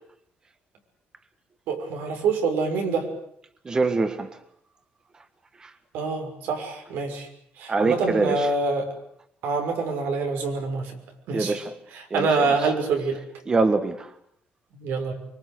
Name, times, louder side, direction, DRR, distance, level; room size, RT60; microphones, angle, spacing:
voice 1, 1.7-3.1 5.9-7.3 7.6-8.9 9.4-10.9 11.3-11.6 11.9-13.2 14.8-15.1, right 4 dB, 85° right, 4 dB, 6.2 m, -26 dB
voice 2, 3.6-4.3 7.7-8.5 11.3-11.7 12.1-12.5 13.5-14.1, right 3 dB, 20° right, 10 dB, 1.5 m, -24 dB
24.5 x 24.0 x 8.3 m, 0.70 s
cardioid pair, 155°, 4 cm